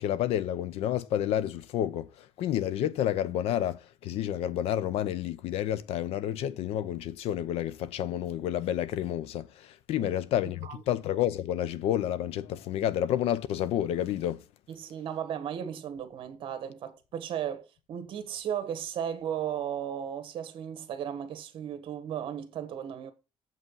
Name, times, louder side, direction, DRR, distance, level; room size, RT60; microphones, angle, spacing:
voice 1, 0.0-14.4, left 11 dB, 70° left, 0.7 m, -30 dB
voice 2, 14.7-23.1, right 9 dB, 55° right, 1.4 m, -35 dB
7.5 x 5.6 x 5.4 m
cardioid pair, 155°, 10 cm